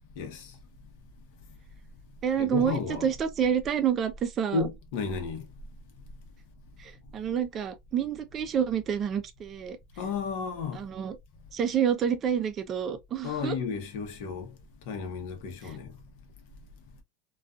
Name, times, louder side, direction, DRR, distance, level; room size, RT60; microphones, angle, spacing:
voice 1, 0.2-0.5 2.4-3.1 4.5-5.4 10.0-10.8 13.2-14.5 14.9-15.9, left 5 dB, 70° left, 0.8 m, -33 dB
voice 2, 2.2-4.7 6.8-9.8 10.7-11.2 11.5-13.6 15.6-15.8, right 8 dB, 30° right, 0.4 m, -28 dB
2.3 x 2.3 x 2.4 m
supercardioid pair, 150°, 0 cm